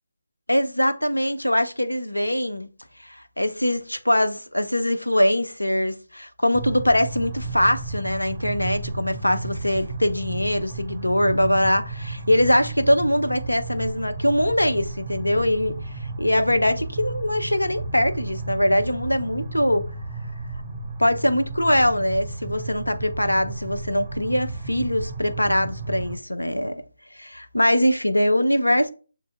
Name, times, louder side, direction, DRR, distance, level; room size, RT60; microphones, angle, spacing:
voice 1, 0.5-2.7 3.0-15.8 16.2-19.9 21.0-26.8 27.1-28.9, left 1 dB, 90° left, 0.5 m, -22 dB
sound 1, 6.5-26.2, right 3 dB, 30° right, 0.6 m, -33 dB
6.5 x 2.6 x 2.5 m
figure-of-eight pair, 150°, 0 cm